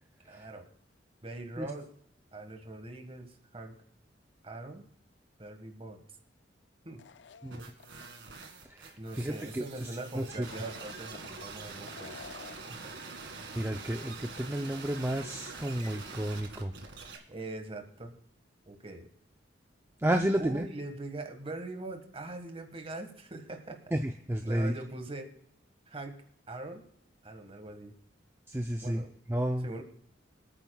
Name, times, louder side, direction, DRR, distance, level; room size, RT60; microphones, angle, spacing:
voice 1, 0.2-0.6 1.2-1.9 2.3-3.7 4.4-4.9 5.4-6.0 6.8-7.0 9.0-12.2 12.7-12.9 17.3-18.1 18.6-19.1 20.3-23.8 24.4-25.3 25.9-26.2 26.5-26.9 27.2-27.9 28.8-29.1 29.6-29.8, right 2 dB, 30° right, 5 dB, 1.6 m, -42 dB
sound 1, 7.0-8.0 8.4-8.5 10.3-11.5 11.9-12.8, left 6 dB, 70° left, 0.4 m, -50 dB
sound 2, 7.5-17.2, right 4 dB, 70° right, 2.0 m, -45 dB
voice 2, 8.6-9.9 10.1-10.5 13.6-16.7 20.0-20.7 23.9-24.7 28.5-29.7, right 1 dB, 15° right, 5 dB, 0.5 m, -32 dB
26.5 x 9.2 x 2.3 m, 0.65 s
head